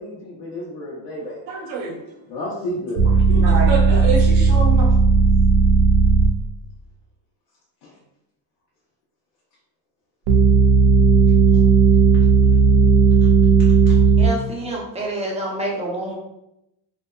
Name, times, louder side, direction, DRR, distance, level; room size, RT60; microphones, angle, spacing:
voice 1, 0.0-1.4 2.3-3.1 7.8-7.9 12.4-12.6 13.6-14.0 15.1-15.2, left 1 dB, 80° left, -6 dB, 0.8 m, -32 dB
voice 2, 1.5-2.0 3.3-4.8, right 4 dB, 90° right, -2 dB, 1.0 m, -25 dB
sound 1, 3.0-6.3 10.3-14.3, right 4 dB, 60° right, 0.5 m, -14 dB
voice 3, 14.2-16.1, right 1 dB, 15° right, -2 dB, 0.7 m, -27 dB
2.6 x 2.3 x 2.2 m, 0.85 s
cardioid pair, 100°, 47 cm